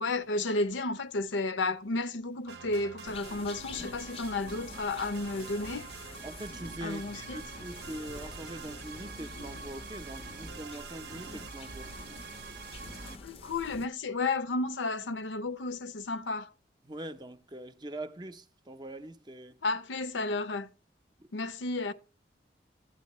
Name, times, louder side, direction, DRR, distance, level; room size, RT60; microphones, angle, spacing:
voice 1, 0.0-5.9 6.8-7.5 11.7-11.8 13.2-16.5 19.6-20.7 21.3-21.9, left 2 dB, 85° left, 0.6 m, -32 dB
sound 1, 2.5-13.2, right 5 dB, 65° right, 0.6 m, -46 dB
sound 2, 3.0-13.9, left 3 dB, 30° left, 0.5 m, -47 dB
voice 2, 6.2-11.9 16.9-19.5, right 1 dB, 25° right, 0.5 m, -43 dB
12.5 x 8.6 x 3.0 m
head